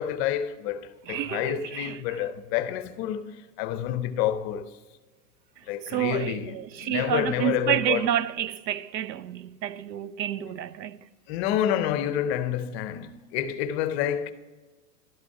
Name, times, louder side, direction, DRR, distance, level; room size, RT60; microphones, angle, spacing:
voice 1, 0.0-4.7 5.7-8.1 11.3-14.3, left 10 dB, 40° left, 0.7 m, -28 dB
voice 2, 1.1-2.0 5.9-11.0, right 11 dB, 85° right, 0.6 m, -29 dB
12.0 x 6.1 x 4.6 m
hypercardioid pair, 115°, 50 cm